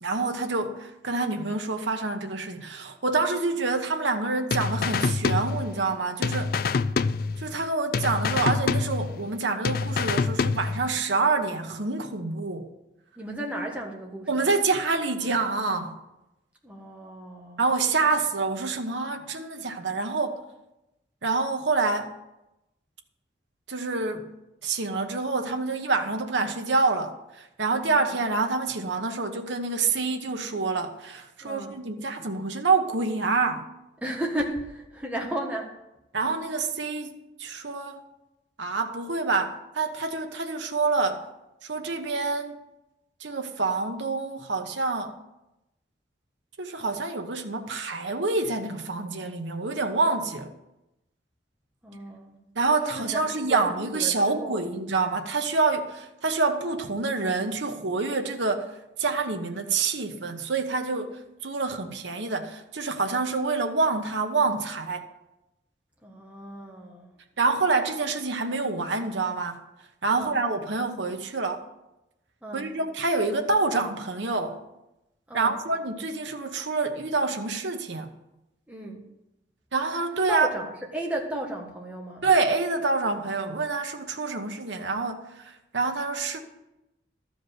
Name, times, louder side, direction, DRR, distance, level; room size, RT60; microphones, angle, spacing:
voice 1, 0.0-6.5 7.4-12.7 14.3-15.9 17.6-20.4 21.2-22.1 23.7-24.3 24.6-33.6 36.1-37.1 37.4-38.0 38.6-41.2 41.6-42.6 43.2-45.1 46.6-50.5 52.5-58.7 59.0-65.0 67.4-69.6 70.0-71.6 72.5-74.6 75.3-78.1 79.7-80.5 82.2-86.4, right 3 dB, 75° right, 1.2 m, -27 dB
sound 1, 4.5-5.9 6.2-7.7 7.9-9.4 9.6-11.0, left 4 dB, 50° left, 0.3 m, -26 dB
voice 2, 13.2-14.5 16.6-17.6 28.1-28.2 31.4-31.8 34.0-35.7 51.8-52.4 52.9-54.7 66.0-67.1 70.1-70.4 72.4-72.7 75.3-75.6 78.7-79.1 80.3-82.2, right 1 dB, 5° right, 1.5 m, -34 dB
13.0 x 5.0 x 8.0 m
head